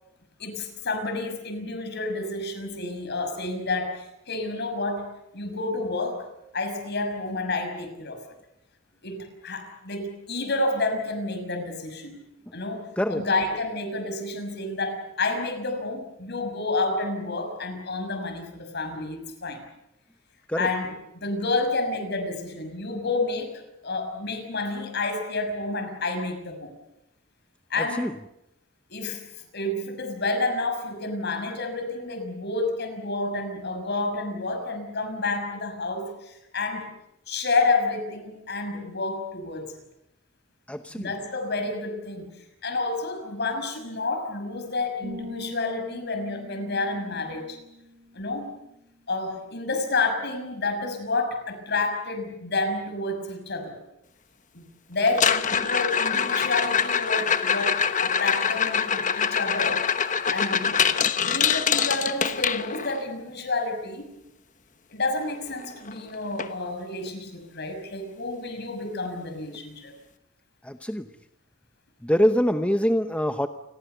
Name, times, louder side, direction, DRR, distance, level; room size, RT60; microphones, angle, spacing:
voice 1, 0.4-5.1 5.3-6.3 6.5-8.4 9.0-12.2 12.5-19.6 20.6-26.7 27.7-28.2 28.9-36.9 37.3-39.7 40.9-47.6 48.1-48.5 49.1-53.8 54.5-54.6 54.9-60.8 61.2-64.1 64.9-69.9, left 3 dB, 55° left, 7 dB, 6.2 m, -29 dB
voice 2, 40.7-41.1 70.6-71.0 72.0-73.5, equal, 5° left, 8 dB, 0.9 m, -24 dB
sound 1, 45.0-48.7, left 1 dB, 55° right, 6.5 m, -43 dB
sound 2, 55.1-63.0 65.3-65.4 65.6-66.0 66.4-66.5 67.1-67.2 69.1-69.2, left 7 dB, 40° left, 1.2 m, -24 dB
29.0 x 21.5 x 6.9 m, 0.86 s
head